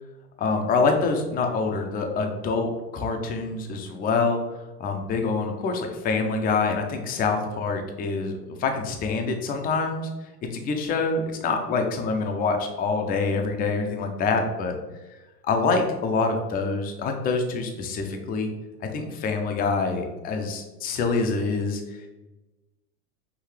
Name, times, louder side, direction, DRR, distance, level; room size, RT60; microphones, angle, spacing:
voice 1, 0.4-4.4 4.8-10.1 10.5-14.7 15.4-18.5 18.9-22.0, left 4 dB, 20° left, 4 dB, 0.5 m, -26 dB
5.8 x 2.6 x 3.2 m, 1.1 s
hypercardioid pair, 95°, 47 cm